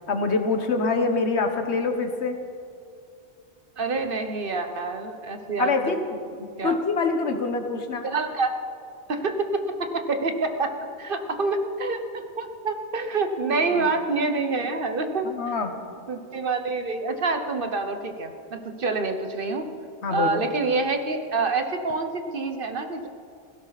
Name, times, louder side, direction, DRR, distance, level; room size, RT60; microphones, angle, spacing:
voice 1, 0.1-2.4 5.6-6.2 6.6-8.1 13.7-13.9 15.2-15.7 20.0-20.4, left 4 dB, 75° left, 6 dB, 1.4 m, -25 dB
voice 2, 3.8-5.9 6.4-6.8 8.0-8.6 9.1-15.3 16.1-19.7 20.1-23.1, right 3 dB, 55° right, 7 dB, 1.1 m, -27 dB
16.5 x 16.5 x 4.1 m, 2.4 s
omnidirectional pair, 1.2 m